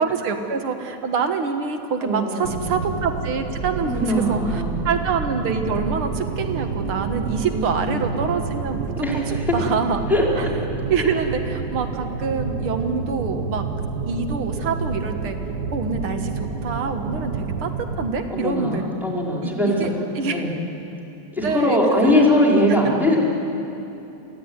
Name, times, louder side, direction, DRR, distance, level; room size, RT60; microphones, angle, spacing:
voice 1, 0.0-8.8 9.1-9.2 9.5-10.1 10.4-10.5 10.9-13.6 14.1-15.4 15.7-18.8 19.4-19.9 20.2-20.4 21.4-22.4 22.8-22.9, right 5 dB, 80° right, 6 dB, 2.5 m, -26 dB
voice 2, 2.0-2.7 3.9-4.8 7.5-8.0 9.0-9.4 10.1-10.2 11.0-11.1 18.3-20.5 21.4-23.2, left 1 dB, ahead, -3 dB, 4.6 m, -21 dB
sound 1, 2.4-18.1, right 4 dB, 55° right, 1.8 m, -29 dB
27.5 x 16.5 x 9.7 m, 2.9 s
omnidirectional pair, 2.3 m